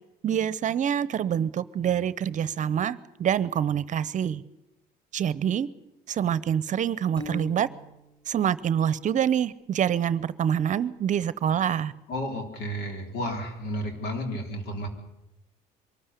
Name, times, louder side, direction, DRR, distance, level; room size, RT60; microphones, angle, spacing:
voice 1, 0.2-4.4 5.1-5.7 6.1-7.7 8.3-11.9, right 9 dB, 45° right, 18 dB, 0.8 m, -26 dB
Piano, 7.2-8.2, left 2 dB, 10° left, 5.6 m, -39 dB
voice 2, 12.1-14.9, equal, 75° left, 5 dB, 4.2 m, -32 dB
23.5 x 13.5 x 9.8 m, 0.89 s
cardioid pair, 110°, 17 cm